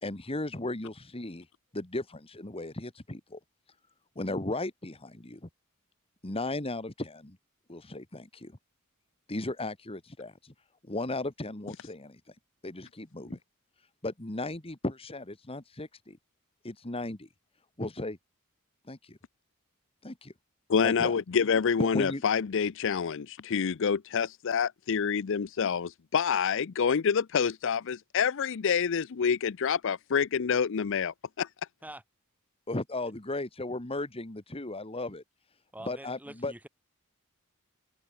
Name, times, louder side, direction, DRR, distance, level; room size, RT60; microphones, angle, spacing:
voice 1, 0.0-1.5 1.7-3.4 4.2-5.5 6.2-7.4 7.7-8.6 9.3-10.5 10.8-12.4 12.6-13.4 14.0-16.2 16.6-17.3 17.8-18.2 18.9-19.2 20.0-20.3 20.8-21.1 21.8-22.2 32.7-35.2 35.9-36.5, left 2 dB, 25° left, 1.7 m, -36 dB
voice 2, 20.7-31.5, left 6 dB, 60° left, 0.5 m, -27 dB
voice 3, 35.7-36.7, right 1 dB, 5° right, 6.2 m, -45 dB
head